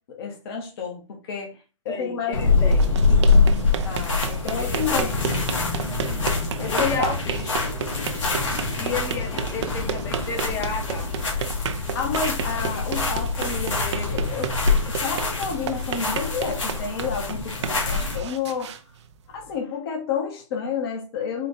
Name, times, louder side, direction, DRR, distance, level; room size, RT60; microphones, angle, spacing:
voice 1, 0.1-1.5 1.8-2.4 3.8-5.1 6.6-7.1 11.9-18.7 19.3-21.5, left 6 dB, 50° left, 1.1 m, -30 dB
voice 2, 1.9-2.9 4.6-5.2 6.7-7.7 8.8-11.1, left 4 dB, 20° left, 0.8 m, -33 dB
Walking on grass, 2.3-18.2, left 4 dB, 70° left, 1.7 m, -24 dB
sound 1, 2.6-19.6, right 8 dB, 60° right, 0.5 m, -33 dB
4.4 x 2.5 x 4.1 m
hypercardioid pair, 130°, 16 cm